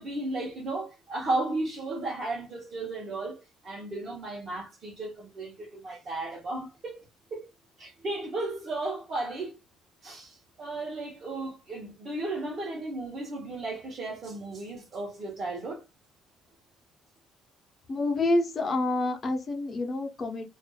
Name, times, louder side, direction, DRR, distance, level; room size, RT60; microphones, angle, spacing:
voice 1, 0.0-7.5 7.8-9.6 10.0-15.9, right 2 dB, 45° right, 1.0 m, -34 dB
voice 2, 17.9-20.5, left 2 dB, 30° left, 0.9 m, -28 dB
2.5 x 2.4 x 2.3 m
cardioid pair, 125°, 0 cm